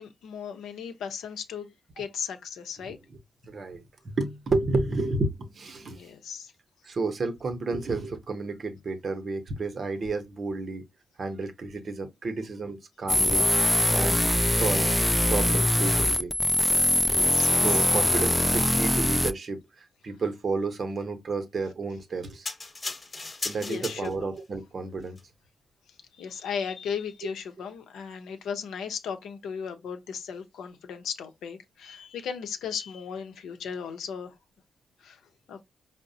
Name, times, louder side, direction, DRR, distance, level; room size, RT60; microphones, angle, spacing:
voice 1, 0.0-3.0 5.8-6.5 17.0-17.9 23.6-24.3 26.1-34.3 35.0-35.2 35.5-35.6, left 6 dB, 75° left, 0.6 m, -36 dB
voice 2, 3.5-6.0 6.8-10.8 11.2-13.5 13.9-14.2 14.5-14.9 15.3-16.3 17.4-19.6 20.0-22.5 23.4-25.2, right 3 dB, 55° right, 0.8 m, -31 dB
sound 1, 13.1-19.3, left 1 dB, 5° left, 0.4 m, -22 dB
sound 2, 22.5-24.4 25.1-25.2, left 3 dB, 35° left, 1.0 m, -36 dB
4.7 x 2.1 x 2.7 m
supercardioid pair, 45°, 0 cm